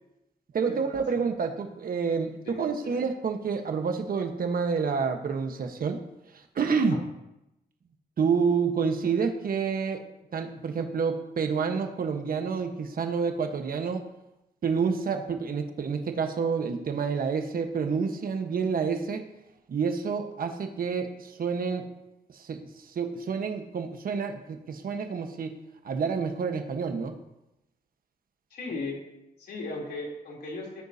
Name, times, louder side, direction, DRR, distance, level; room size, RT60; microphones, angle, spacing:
voice 1, 0.5-6.0 6.5-7.0 8.2-10.0 10.3-14.0 14.6-19.2 19.7-21.9 22.3-22.6 22.9-25.5 25.8-27.2, right 5 dB, 65° right, 5 dB, 1.2 m, -28 dB
voice 2, 2.4-3.1 6.9-7.0 28.5-29.0 29.4-30.8, left 2 dB, 85° left, -2 dB, 3.4 m, -37 dB
18.5 x 9.1 x 2.8 m, 0.88 s
cardioid pair, 80°, 16 cm